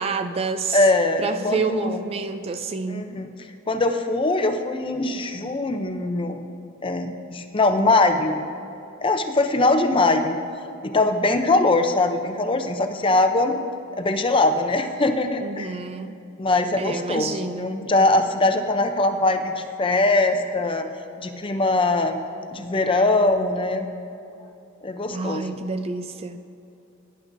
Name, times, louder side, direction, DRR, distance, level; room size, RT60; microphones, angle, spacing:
voice 1, 0.0-0.9 1.2-3.1 15.4-16.2 16.8-17.8 25.1-26.4, right 4 dB, 30° right, 9 dB, 0.3 m, -28 dB
voice 2, 0.7-2.0 2.9-3.3 3.7-6.4 6.8-8.4 9.0-10.4 10.8-13.6 13.9-15.7 16.4-17.3 17.6-20.8 21.2-22.2 22.5-23.9 24.8-25.6, left 2 dB, 25° left, 6 dB, 0.6 m, -21 dB
18.0 x 10.5 x 2.6 m, 2.9 s
head